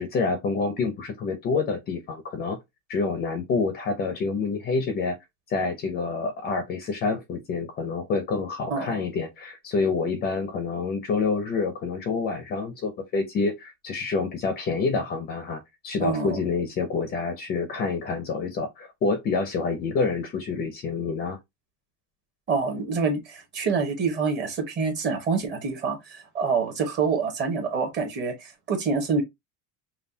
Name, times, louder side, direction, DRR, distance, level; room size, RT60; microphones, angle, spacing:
voice 1, 0.0-2.6 2.9-5.2 5.5-21.4, left 4 dB, 25° left, 0.5 m, -27 dB
voice 2, 16.0-16.4 22.5-29.2, right 5 dB, 30° right, 1.1 m, -26 dB
5.5 x 2.3 x 2.6 m
cardioid pair, 175°, 36 cm